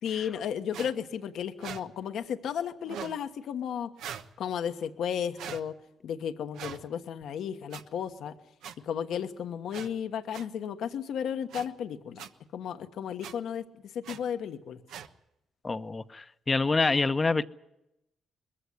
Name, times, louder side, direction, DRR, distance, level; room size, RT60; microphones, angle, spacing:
voice 1, 0.0-3.9 4.4-5.7 6.0-8.3 8.8-12.2 12.5-13.6 13.9-14.8, left 8 dB, 75° left, 1.3 m, -34 dB
sound 1, 0.7-0.9 1.6-1.8 2.8-3.2 4.0-4.3 5.4-5.6 6.5-6.8 7.7-7.8 8.6-8.7 9.7-9.9 10.3-10.4 11.5-11.7 12.2-12.3 13.2-13.3 14.0-14.2 14.9-15.1, right 8 dB, 85° right, 1.1 m, -40 dB
voice 2, 15.6-17.4, left 3 dB, 25° left, 0.9 m, -26 dB
21.5 x 15.0 x 9.8 m
cardioid pair, 90°, 0 cm